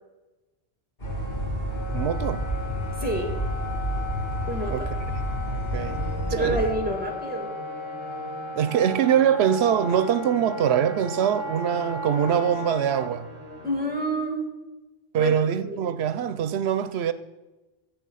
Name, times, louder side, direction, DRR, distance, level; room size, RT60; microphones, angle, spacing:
sound 1, 1.0-6.7, right 1 dB, 60° left, 2.6 m, -30 dB
Wind instrument woodwind instrument, 1.0-13.1, left 3 dB, 30° left, 1.3 m, -36 dB
voice 1, 1.9-2.4 4.7-4.8 5.7-6.0 6.4-6.6 8.5-13.3 15.1-17.1, right 9 dB, 85° right, 0.9 m, -23 dB
voice 2, 3.0-3.3 4.5-4.9 6.3-7.5 13.6-14.4 15.2-15.3 15.7-15.8, right 2 dB, 10° right, 2.3 m, -27 dB
Musical instrument, 5.7-14.2, left 1 dB, 35° right, 2.9 m, -42 dB
15.5 x 7.1 x 5.6 m
omnidirectional pair, 1.1 m